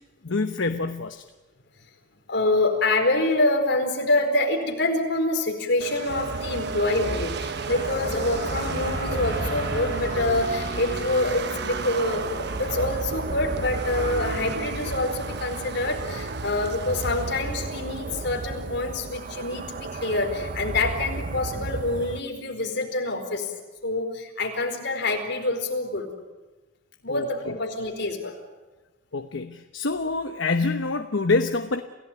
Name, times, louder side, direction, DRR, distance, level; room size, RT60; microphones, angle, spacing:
voice 1, 0.2-1.2 27.1-27.5 29.1-31.8, left 3 dB, 80° left, 7 dB, 1.0 m, -26 dB
voice 2, 2.3-23.5 23.8-26.1 27.0-28.4, left 2 dB, 60° left, 3 dB, 4.5 m, -26 dB
sound 1, 5.8-18.8, right 4 dB, 60° right, 1.3 m, -35 dB
sound 2, 6.1-22.2, right 3 dB, 45° right, 0.7 m, -34 dB
sound 3, 7.7-14.1, left 2 dB, 45° left, 1.0 m, -38 dB
28.0 x 16.5 x 9.2 m, 1.2 s
head